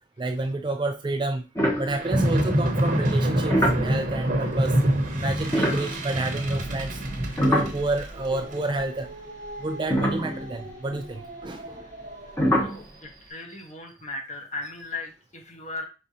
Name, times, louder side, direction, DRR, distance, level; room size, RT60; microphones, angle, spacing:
voice 1, 0.2-1.5 1.8-4.8 5.1-7.0 7.4-9.1 9.6-11.9, right 2 dB, 25° right, 6 dB, 0.4 m, -29 dB
sound 1, 1.5-2.6 3.2-8.4 8.7-8.8 9.5-9.6 9.9-11.0 12.4-12.8, equal, 15° left, 0.9 m, -27 dB
sound 2, 1.9-12.5, right 1 dB, 45° right, 1.0 m, -27 dB
voice 2, 5.5-5.9 12.5-15.8, left 2 dB, 35° left, 2 dB, 1.0 m, -37 dB
5.3 x 3.7 x 2.7 m, 0.31 s
head